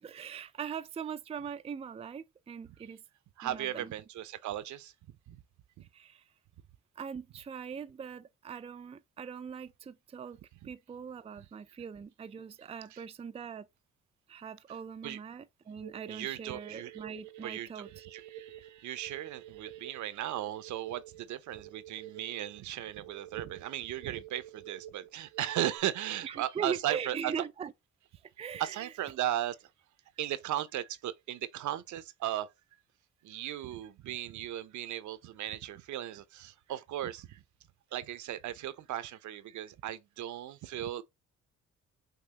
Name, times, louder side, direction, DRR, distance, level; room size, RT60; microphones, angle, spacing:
voice 1, 0.0-3.0 3.4-3.9 5.9-6.2 7.0-10.4 10.6-13.7 14.3-18.1 26.2-27.7 28.2-28.9, right 7 dB, 20° right, 0.4 m, -41 dB
voice 2, 3.4-4.9 5.3-5.4 5.8-5.9 10.6-10.7 12.9-13.0 15.0-15.2 16.1-17.0 17.4-27.3 28.6-29.7 30.2-32.5 33.2-37.4 37.9-41.0, right 12 dB, 70° right, 0.7 m, -37 dB
sound 1, 15.8-25.8, right 12 dB, 90° right, 1.1 m, -50 dB
5.9 x 3.0 x 2.9 m
cardioid pair, 90°, 30 cm